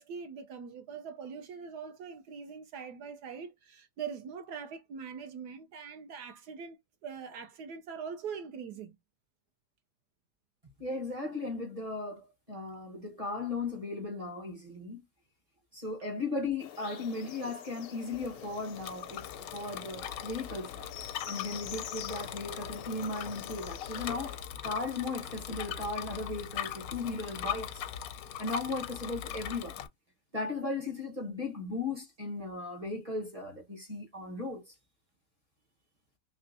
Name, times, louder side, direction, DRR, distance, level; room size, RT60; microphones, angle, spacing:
voice 1, 0.0-9.0, right 6 dB, 70° right, 1.1 m, -42 dB
voice 2, 10.8-15.0 15.7-20.9 21.3-27.8 28.4-29.8 30.3-34.7, left 3 dB, 30° right, 0.7 m, -37 dB
sound 1, 16.6-24.4, left 10 dB, 90° left, 1.4 m, -46 dB
Bicycle, 18.1-29.9, left 10 dB, 70° left, 0.9 m, -40 dB
3.5 x 3.2 x 2.5 m
omnidirectional pair, 1.8 m